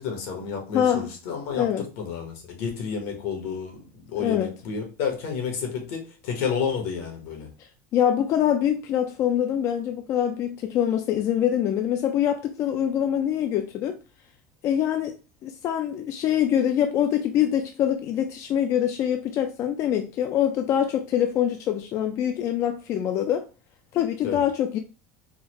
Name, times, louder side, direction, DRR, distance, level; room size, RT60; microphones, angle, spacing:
voice 1, 0.0-7.5 24.2-24.4, left 6 dB, 75° left, 1.2 m, -31 dB
voice 2, 0.7-1.1 1.5-1.8 4.2-4.5 7.9-14.0 14.6-15.2 15.4-23.5 23.9-24.8, left 10 dB, 45° left, 0.3 m, -24 dB
3.9 x 2.1 x 3.0 m
supercardioid pair, 125°, 7 cm